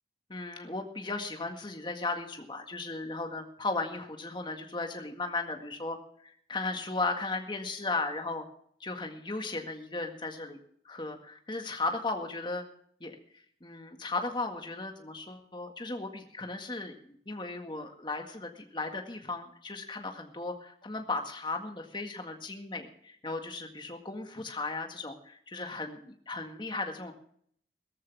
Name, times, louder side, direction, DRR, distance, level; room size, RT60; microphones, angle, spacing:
voice 1, 0.3-8.4 8.8-10.6 10.9-12.6 13.0-13.2 13.6-16.9 17.3-27.1, left 3 dB, 25° left, 4 dB, 1.8 m, -36 dB
17.0 x 14.5 x 3.5 m, 0.63 s
head